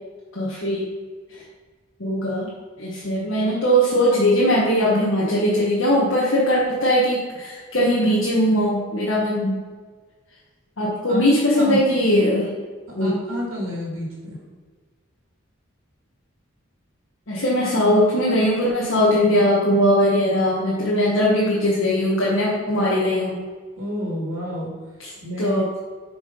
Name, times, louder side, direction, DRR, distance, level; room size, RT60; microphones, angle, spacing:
voice 1, 0.3-0.9 1.3-1.4 2.0-2.5 2.8-9.6 10.8-12.5 12.9-13.1 17.3-23.4 25.0-25.1 25.4-25.7, equal, 65° left, -6 dB, 1.4 m, -20 dB
voice 2, 12.9-14.4 23.8-24.7 25.2-25.6, equal, 85° right, -3 dB, 2.1 m, -29 dB
7.3 x 4.9 x 5.3 m, 1.5 s
head